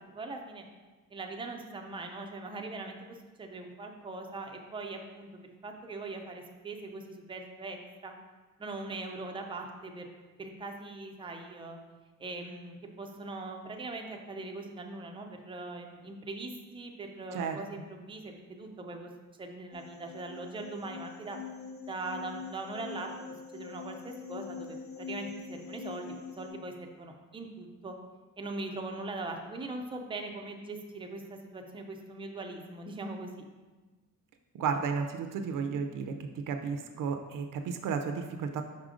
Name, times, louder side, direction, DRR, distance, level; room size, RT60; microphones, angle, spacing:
voice 1, 0.1-0.6 1.1-8.1 8.6-10.1 10.4-11.8 12.2-19.1 19.4-21.4 21.9-23.1 23.5-27.9 28.4-33.3, right 2 dB, 15° right, 3 dB, 0.4 m, -41 dB
sound 1, 19.7-26.5, left 6 dB, 65° left, 0.8 m, -44 dB
voice 2, 34.5-36.1 36.5-38.6, right 6 dB, 65° right, 6 dB, 0.5 m, -33 dB
5.6 x 4.9 x 3.7 m, 1.3 s
cardioid pair, 175°, 34 cm